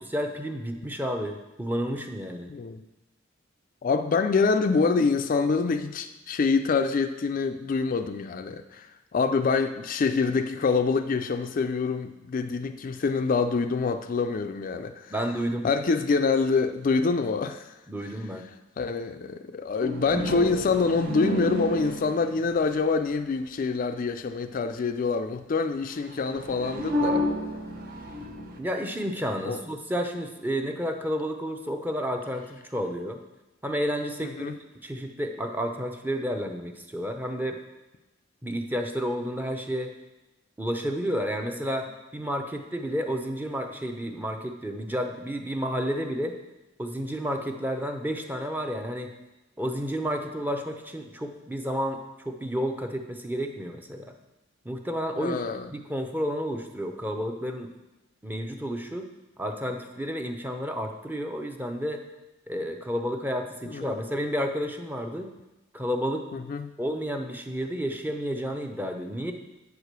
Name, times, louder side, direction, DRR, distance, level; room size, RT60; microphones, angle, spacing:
voice 1, 0.0-2.5 15.1-15.7 17.9-18.4 28.6-33.2 33.6-34.5 34.8-37.6 38.4-39.9 40.6-46.3 46.8-49.1 49.6-54.1 54.6-55.4 55.7-57.7 58.2-59.1 59.4-62.0 62.5-65.3 65.7-66.3 66.8-69.3, equal, 10° right, 4 dB, 0.6 m, -31 dB
voice 2, 2.5-2.8 3.8-8.9 9.1-15.1 15.6-17.7 18.8-27.2 29.4-29.6 34.2-34.6 55.2-55.7 63.7-64.0 66.3-66.7, left 4 dB, 45° left, 8 dB, 0.4 m, -26 dB
sound 1, 19.8-22.8 26.0-28.6, equal, 50° right, 0.8 m, -31 dB
8.2 x 4.8 x 6.6 m, 1.0 s
head